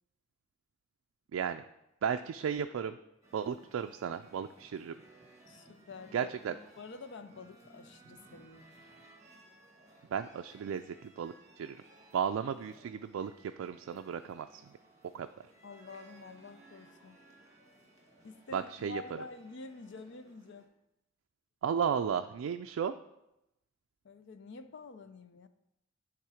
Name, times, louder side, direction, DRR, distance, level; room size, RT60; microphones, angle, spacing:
voice 1, 1.3-1.6 2.0-3.0 3.3-4.9 6.1-6.5 10.1-11.8 12.1-14.6 15.1-15.3 18.5-19.0 21.6-23.0, right 7 dB, 90° right, 7 dB, 0.3 m, -34 dB
sound 1, 3.2-20.7, right 2 dB, 15° right, 1.6 m, -60 dB
voice 2, 5.5-6.3 6.8-8.7 15.6-17.2 18.2-20.7 24.0-25.5, left 4 dB, 60° left, 11 dB, 0.5 m, -48 dB
10.5 x 3.6 x 4.9 m, 0.87 s
head